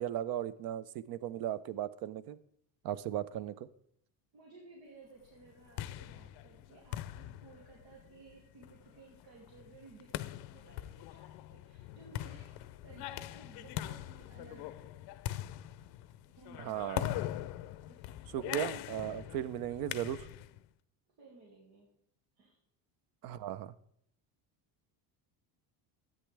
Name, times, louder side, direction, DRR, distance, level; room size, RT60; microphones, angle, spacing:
voice 1, 0.0-2.4 2.8-3.5 16.6-17.1 18.3-20.3 23.2-23.7, right 11 dB, 55° right, 18 dB, 0.5 m, -37 dB
voice 2, 4.3-12.6 12.8-14.9 16.3-16.9 17.9-18.0 21.2-21.9 22.4-22.6, right 3 dB, 85° right, -3 dB, 2.5 m, -57 dB
sound 1, 5.4-20.6, left 14 dB, 60° left, 0.5 m, -42 dB
13.0 x 8.8 x 3.3 m, 0.70 s
cardioid pair, 165°, 44 cm